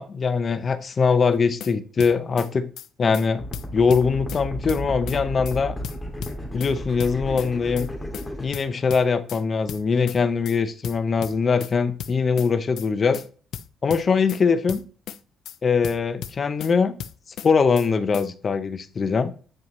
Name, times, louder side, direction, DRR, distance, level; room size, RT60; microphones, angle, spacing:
voice 1, 0.0-2.7 3.0-3.4 3.7-5.7 6.5-7.9 8.4-13.2 13.8-14.8 15.6-16.9 17.4-19.3, left 5 dB, 40° left, 0.8 m, -22 dB
sound 1, 1.3-1.7 2.0-2.5 2.8-2.9 3.1-3.3 3.5-4.4 4.7-5.2 5.4-5.6 5.8-6.7 7.0-7.5 7.8-7.9 8.1-8.3 8.5-9.4 9.7-10.2 10.4-10.6 10.8-11.7 12.0-12.5 12.8-12.9 13.1-13.3 13.5-14.4 14.7-15.2 15.4-15.6 15.8-16.7 17.0-17.5 17.8-17.9 18.1-18.3, left 10 dB, 75° left, 0.5 m, -35 dB
sound 2, 3.4-8.5, equal, 10° left, 2.2 m, -33 dB
9.8 x 4.7 x 3.1 m
cardioid pair, 90°, 0 cm